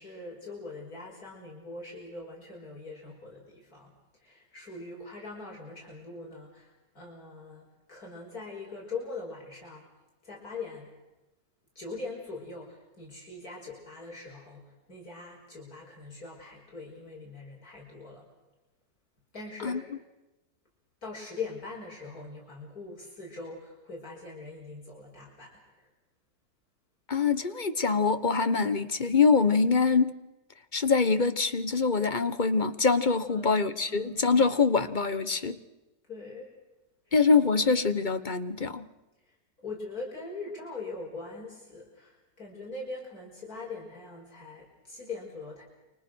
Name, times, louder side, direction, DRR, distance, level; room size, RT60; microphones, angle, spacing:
voice 1, 0.0-3.9 4.2-9.8 10.2-10.9 11.8-14.6 14.9-18.2 19.3-19.9 21.0-25.9 33.3-34.3 36.1-36.5 37.1-37.2 39.6-45.6, left 3 dB, 55° left, -2 dB, 6.1 m, -42 dB
voice 2, 27.1-30.1 30.7-35.6 37.1-38.9, left 4 dB, 30° left, 11 dB, 1.2 m, -24 dB
29.5 x 24.5 x 6.4 m, 1.0 s
omnidirectional pair, 1.9 m